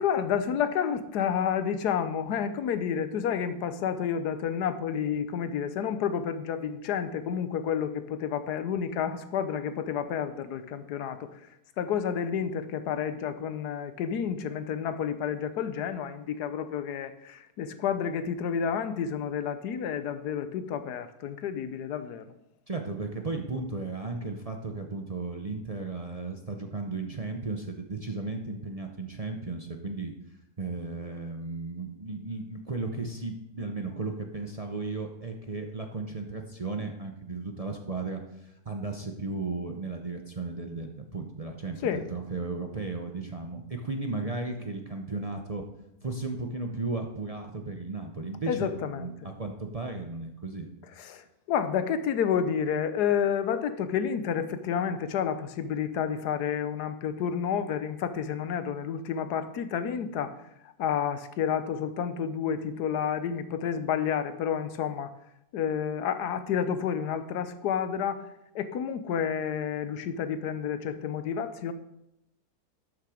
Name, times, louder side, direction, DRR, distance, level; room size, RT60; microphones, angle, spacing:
voice 1, 0.0-11.5 11.8-22.3 41.8-42.0 48.5-49.3 51.0-60.4 60.6-65.1 65.5-68.3 68.5-71.7, left 8 dB, 90° left, 11 dB, 1.4 m, -30 dB
voice 2, 22.7-30.1 30.6-45.6 46.0-50.7, right 3 dB, 35° right, 3 dB, 0.7 m, -35 dB
12.0 x 6.7 x 4.9 m, 0.84 s
omnidirectional pair, 1.7 m